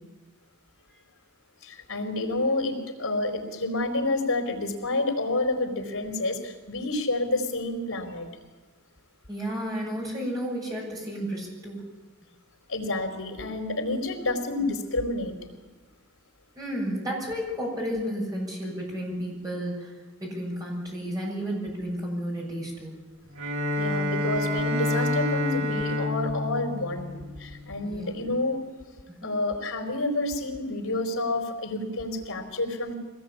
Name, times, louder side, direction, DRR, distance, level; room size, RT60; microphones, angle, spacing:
voice 1, 1.6-8.3 12.7-15.3 23.8-28.6 29.2-32.9, left 2 dB, 75° left, 4 dB, 4.4 m, -29 dB
voice 2, 9.3-11.8 16.6-19.9 20.2-22.9 27.8-28.3 29.1-29.3, equal, 15° right, -2 dB, 7.1 m, -32 dB
Bowed string instrument, 23.3-27.8, left 1 dB, 75° right, 2.8 m, -28 dB
23.5 x 18.5 x 8.8 m, 1.2 s
head